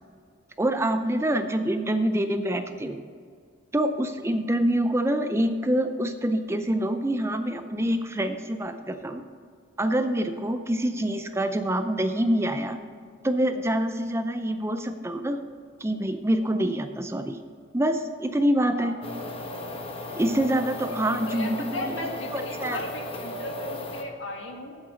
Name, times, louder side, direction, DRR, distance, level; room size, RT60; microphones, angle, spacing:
voice 1, 0.6-3.0 3.7-9.2 9.8-12.8 13.2-15.4 15.8-17.4 17.7-19.0 20.2-22.0 22.3-22.8, right 1 dB, 15° right, 8 dB, 0.4 m, -26 dB
voice 2, 18.7-19.0 21.1-24.8, left 2 dB, 75° left, 2 dB, 1.7 m, -36 dB
sound 1, 19.0-24.0, left 2 dB, 30° left, 0.9 m, -36 dB
8.0 x 7.6 x 6.9 m, 2.2 s
head